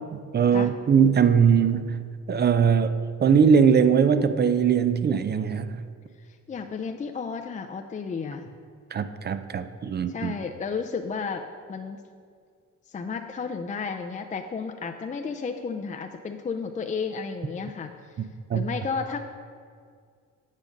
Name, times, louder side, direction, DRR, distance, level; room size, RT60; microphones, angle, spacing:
voice 1, 0.3-2.0 2.3-5.8 8.9-10.3 18.5-18.7, right 7 dB, 35° right, 11 dB, 0.4 m, -21 dB
voice 2, 6.2-8.5 10.1-12.0 12.9-18.3 18.5-19.2, left 5 dB, 25° left, 5 dB, 0.4 m, -33 dB
8.4 x 5.2 x 5.1 m, 2.1 s
cardioid pair, 90°, 30 cm